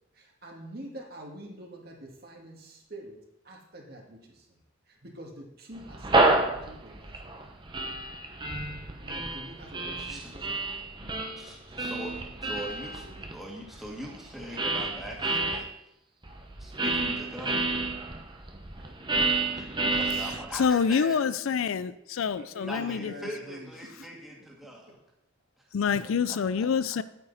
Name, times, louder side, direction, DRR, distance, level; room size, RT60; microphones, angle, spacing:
voice 1, 0.1-3.2 3.4-4.6 4.9-7.4 9.0-10.6 11.0-11.2 11.7-11.9 18.8-19.8 21.4-21.6 22.4-24.1, right 1 dB, 45° right, 0 dB, 2.0 m, -46 dB
sound 1, 5.8-15.6 16.2-20.7, right 3 dB, 20° right, 0.9 m, -30 dB
voice 2, 10.0-10.3 11.4-15.7 16.6-17.7 19.6-21.2 22.7-25.0 26.0-26.7, equal, ahead, -3 dB, 1.8 m, -42 dB
voice 3, 20.5-23.1 25.7-27.0, left 6 dB, 75° left, 15 dB, 0.4 m, -26 dB
9.7 x 9.1 x 4.1 m, 0.83 s
head